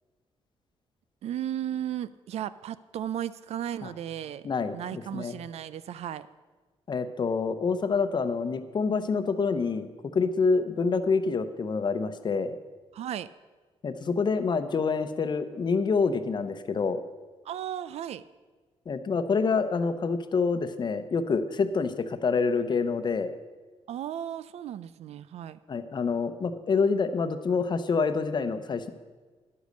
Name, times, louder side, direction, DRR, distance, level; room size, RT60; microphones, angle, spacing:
voice 1, 1.2-4.5 4.7-6.3 12.9-13.3 17.4-18.2 23.9-25.6, right 10 dB, 80° right, 16 dB, 0.4 m, -35 dB
voice 2, 4.4-5.4 6.9-9.9 10.1-12.6 13.8-17.0 18.9-23.3 25.7-28.9, left 4 dB, 45° left, 10 dB, 0.8 m, -27 dB
10.5 x 8.2 x 6.5 m, 1.3 s
cardioid pair, 105°, 11 cm